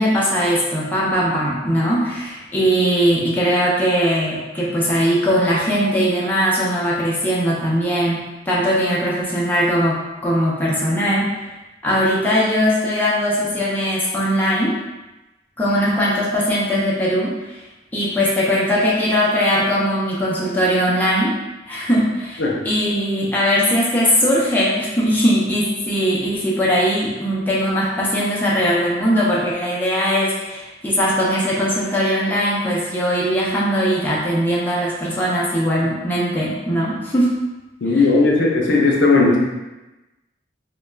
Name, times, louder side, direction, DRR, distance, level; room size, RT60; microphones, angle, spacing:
voice 1, 0.0-10.0 10.2-11.3 11.8-14.7 15.6-17.3 17.9-21.3 21.7-37.3, equal, 10° left, -6 dB, 0.4 m, -20 dB
voice 2, 37.8-39.4, left 3 dB, 75° left, -1 dB, 0.5 m, -16 dB
2.3 x 2.1 x 3.1 m, 1.0 s
head